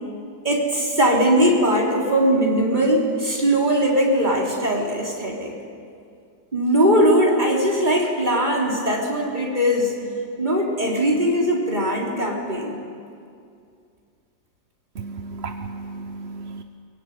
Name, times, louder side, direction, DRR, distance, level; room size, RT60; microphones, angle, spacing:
voice 1, 0.4-5.6 6.5-10.0 10.4-12.8, equal, 25° right, -1 dB, 4.1 m, -20 dB
voice 2, 15.0-16.6, right 4 dB, 45° right, 6 dB, 1.0 m, -34 dB
23.5 x 23.5 x 9.5 m, 2.4 s
omnidirectional pair, 2.0 m